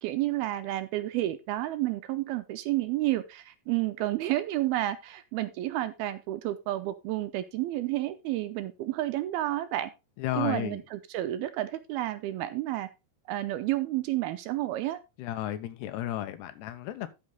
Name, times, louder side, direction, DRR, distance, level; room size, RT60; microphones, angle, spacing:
voice 1, 0.0-9.9 10.3-12.9 13.3-15.0, right 15 dB, 80° right, 2.4 m, -30 dB
voice 2, 10.2-10.8 15.2-17.1, left 13 dB, 80° left, 3.1 m, -33 dB
13.0 x 5.7 x 3.8 m
omnidirectional pair, 4.8 m